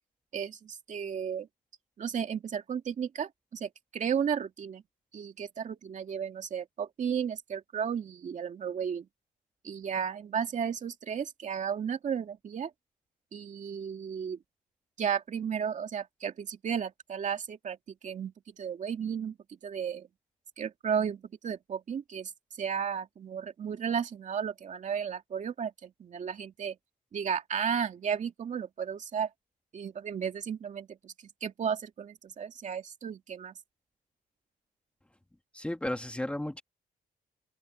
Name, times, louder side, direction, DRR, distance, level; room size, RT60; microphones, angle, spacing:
voice 1, 0.3-1.5 2.0-4.8 5.1-9.1 9.6-12.7 13.3-14.4 15.0-17.8 18.0-19.4 19.6-20.1 20.6-22.3 22.6-26.8 27.1-29.3 29.7-31.1 31.4-33.5, right 7 dB, 50° right, 2.5 m, -34 dB
voice 2, 35.5-36.6, left 1 dB, 5° left, 1.7 m, -33 dB
open air
cardioid pair, 130°, 16 cm